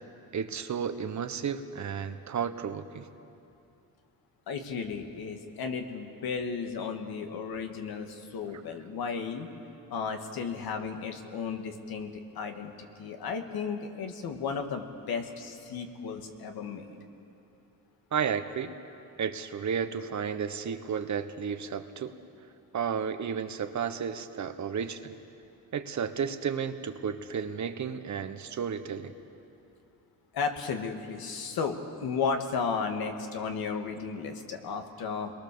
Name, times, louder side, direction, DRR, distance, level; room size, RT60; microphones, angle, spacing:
voice 1, 0.3-3.1 18.1-18.7 19.2-22.1 22.7-25.1 25.7-29.1, right 7 dB, 50° right, 9 dB, 1.3 m, -32 dB
voice 2, 4.5-9.5 9.9-12.1 12.4-17.0 30.3-35.3, left 5 dB, 75° left, 5 dB, 2.2 m, -34 dB
29.5 x 22.0 x 7.0 m, 2.7 s
cardioid pair, 115°, 37 cm